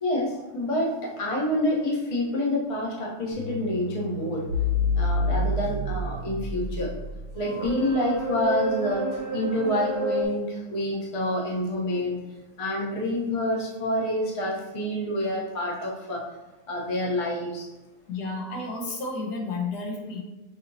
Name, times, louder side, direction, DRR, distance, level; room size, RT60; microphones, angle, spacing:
voice 1, 0.0-4.5 4.9-6.9 7.3-12.2 12.6-16.2 16.7-17.7, left 1 dB, 35° left, -3 dB, 0.6 m, -27 dB
sound 1, 3.3-11.0, left 3 dB, 20° right, 0.5 m, -43 dB
sound 2, 4.5-10.2, left 1 dB, 70° right, 1.1 m, -28 dB
voice 2, 18.1-20.2, left 3 dB, 85° left, -1 dB, 1.5 m, -31 dB
6.0 x 2.9 x 2.7 m, 1.1 s
omnidirectional pair, 1.7 m